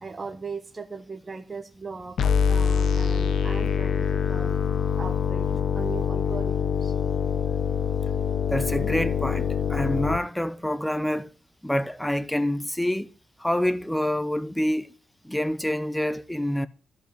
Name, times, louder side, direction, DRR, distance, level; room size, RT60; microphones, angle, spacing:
voice 1, 0.0-4.6 5.0-6.9, right 4 dB, 25° right, 1.1 m, -38 dB
sound 1, 2.2-10.2, left 7 dB, 75° left, 1.1 m, -25 dB
voice 2, 8.5-11.3 11.6-13.1 13.4-14.9 15.2-16.7, left 1 dB, 5° left, 0.8 m, -27 dB
14.5 x 5.1 x 9.1 m
wide cardioid pair, 150°, 0 cm